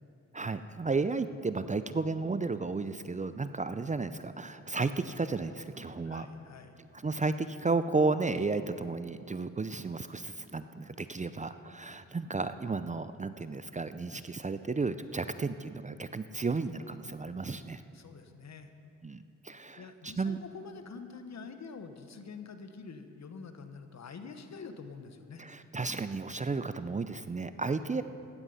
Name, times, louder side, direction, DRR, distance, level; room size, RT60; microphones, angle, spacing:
voice 1, 0.3-6.3 7.0-17.8 19.0-20.4 25.4-28.0, right 3 dB, 25° right, 12 dB, 0.5 m, -33 dB
voice 2, 6.0-6.7 17.9-18.7 19.8-25.4 27.8-28.0, left 5 dB, 55° left, 8 dB, 1.3 m, -46 dB
15.0 x 11.5 x 5.6 m, 2.5 s
cardioid pair, 60°, 32 cm